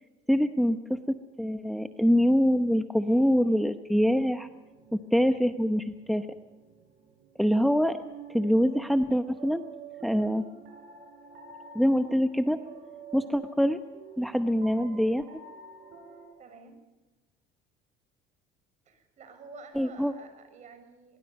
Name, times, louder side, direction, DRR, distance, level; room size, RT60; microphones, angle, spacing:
voice 1, 0.3-0.8 1.4-4.5 5.1-6.3 7.4-7.9 8.3-9.6 10.0-10.4 11.7-12.6 13.1-13.8 14.2-15.3 19.7-20.1, equal, ahead, 8 dB, 0.9 m, -24 dB
sound 1, 4.4-16.3, right 5 dB, 60° right, 7.4 m, -49 dB
voice 2, 16.4-16.8 18.8-21.2, right 4 dB, 40° right, 7 dB, 6.6 m, -49 dB
23.5 x 22.5 x 5.4 m, 1.1 s
cardioid pair, 125°, 18 cm